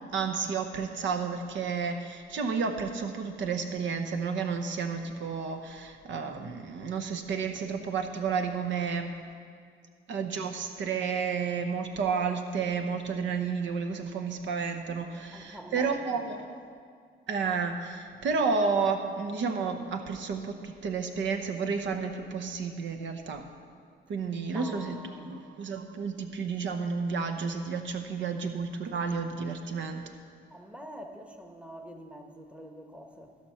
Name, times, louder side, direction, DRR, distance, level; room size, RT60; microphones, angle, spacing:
voice 1, 0.1-9.1 10.1-16.5 17.3-23.4 24.1-24.9 25.3-30.0, right 5 dB, 70° right, 6 dB, 0.9 m, -31 dB
voice 2, 15.3-16.3 24.4-25.4 30.5-33.4, equal, 5° right, 4 dB, 1.0 m, -46 dB
14.5 x 5.9 x 5.6 m, 2.1 s
cardioid pair, 90°, 20 cm